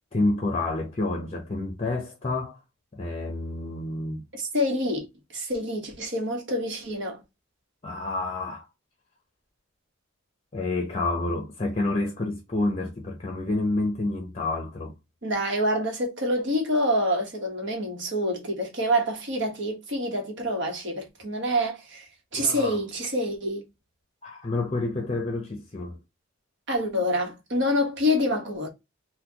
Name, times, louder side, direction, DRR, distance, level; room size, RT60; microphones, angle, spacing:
voice 1, 0.1-2.6 2.9-4.3 7.8-8.7 10.5-14.9 22.3-22.8 24.2-26.0, left 2 dB, 30° left, 0.7 m, -29 dB
voice 2, 4.3-5.1 5.3-7.2 15.2-23.6 26.7-28.7, equal, 60° right, 1.1 m, -27 dB
3.9 x 2.3 x 2.8 m
head